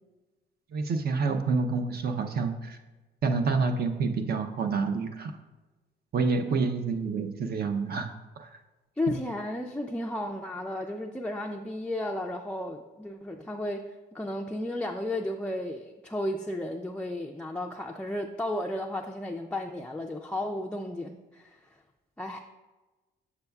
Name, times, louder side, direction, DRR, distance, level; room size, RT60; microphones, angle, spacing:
voice 1, 0.7-2.8 3.2-5.4 6.1-8.1 8.4-8.5 9.1-9.2, right 4 dB, 50° right, 5 dB, 0.7 m, -28 dB
voice 2, 9.0-21.6 22.2-22.4, left 1 dB, 5° left, 0 dB, 0.4 m, -33 dB
7.0 x 6.7 x 2.3 m, 1.2 s
cardioid pair, 90°, 20 cm